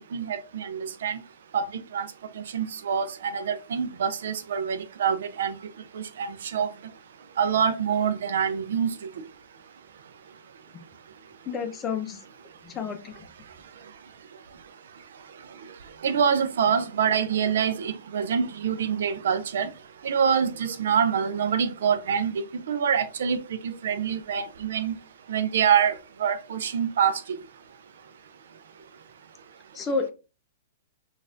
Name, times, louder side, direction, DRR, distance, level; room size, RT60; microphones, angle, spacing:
voice 1, 0.1-1.2 1.5-1.7 1.9-2.1 2.5-5.6 5.9-6.7 7.4-8.9 16.0-19.7 20.0-22.3 22.7-23.4 23.6-24.9 25.3-27.2, right 7 dB, 75° right, 0.5 m, -25 dB
voice 2, 11.5-12.2 12.6-13.3 29.7-30.1, left 5 dB, 25° left, 0.5 m, -30 dB
3.9 x 2.5 x 2.6 m
hypercardioid pair, 135°, 0 cm